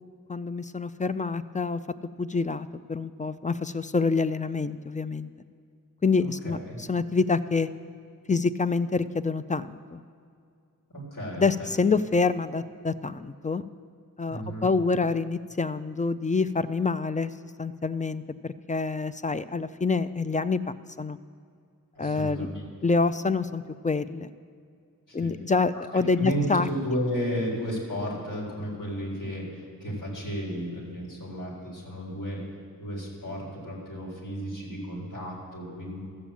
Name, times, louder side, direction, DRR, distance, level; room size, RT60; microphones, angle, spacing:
voice 1, 0.3-1.8 2.2-5.3 6.0-7.7 8.3-10.0 11.4-13.6 14.2-17.3 17.6-20.6 21.0-21.2 22.0-22.5 22.8-24.3 25.1-26.7, left 4 dB, 25° left, 13 dB, 0.3 m, -27 dB
voice 2, 6.2-6.8 10.9-11.7 14.3-14.7 21.9-22.6 25.1-25.3 26.2-32.4 32.8-36.0, equal, 65° left, -3 dB, 3.9 m, -33 dB
13.5 x 7.2 x 7.3 m, 2.3 s
wide cardioid pair, 55°, 34 cm